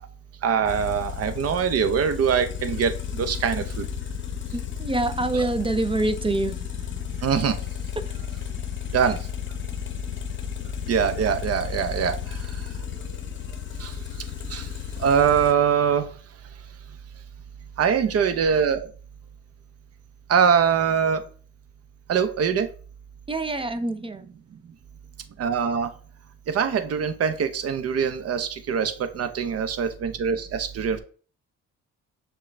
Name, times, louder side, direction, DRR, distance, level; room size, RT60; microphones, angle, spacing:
voice 1, 0.4-3.8 5.3-5.5 7.2-7.5 8.9-9.2 10.9-12.2 13.8-13.9 14.5-14.6 15.0-16.1 17.8-18.9 20.3-21.2 22.1-22.7 25.4-25.9 26.5-31.0, right 7 dB, 55° right, 0.7 m, -23 dB
sound 1, 0.6-15.5, left 9 dB, 40° left, 0.7 m, -33 dB
voice 2, 4.5-6.6 8.0-8.1 9.0-9.1 23.3-24.3, right 2 dB, 20° right, 0.4 m, -26 dB
6.1 x 2.3 x 3.3 m
cardioid pair, 90°, 30 cm